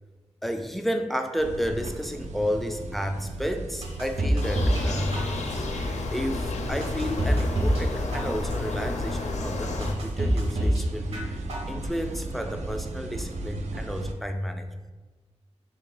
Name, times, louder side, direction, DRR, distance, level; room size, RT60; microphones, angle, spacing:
voice 1, 0.4-5.7 6.1-11.3 11.7-14.9, equal, ahead, 6 dB, 0.3 m, -31 dB
sound 1, 1.4-14.1, right 2 dB, 80° right, 0.4 m, -37 dB
sound 2, 3.8-4.9 5.1-5.7 6.2-6.3 6.8-7.8 8.1-8.7 9.2-9.3 9.8-10.8 11.1-11.7 12.1-12.2, equal, 60° right, 0.7 m, -26 dB
sound 3, 4.4-9.9, left 2 dB, 80° left, 0.4 m, -31 dB
3.3 x 2.8 x 3.7 m, 1.2 s
wide cardioid pair, 70°, 12 cm